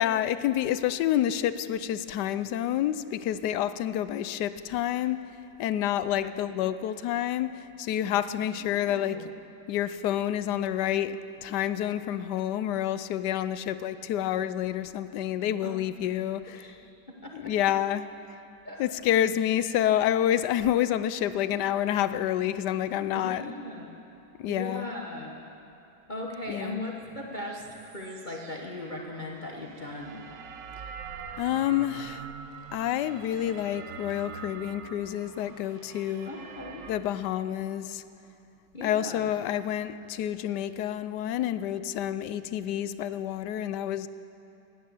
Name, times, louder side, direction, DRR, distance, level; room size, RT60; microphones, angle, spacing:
voice 1, 0.0-9.3 9.7-16.7 17.3-18.1 18.8-23.5 24.4-24.9 26.5-26.8 31.4-32.3 32.7-36.3 36.9-38.0 38.8-44.1, left 11 dB, 75° left, 13 dB, 1.1 m, -28 dB
voice 2, 6.0-6.5 8.4-9.3 15.6-15.8 16.5-16.8 17.1-17.5 18.6-18.8 23.1-23.9 24.5-25.4 26.1-30.2 36.3-36.9 38.7-39.3, left 1 dB, 30° left, -1 dB, 1.1 m, -39 dB
sound 1, 27.3-37.0, right 6 dB, 75° right, 1.5 m, -44 dB
17.0 x 10.5 x 7.8 m, 2.8 s
omnidirectional pair, 2.0 m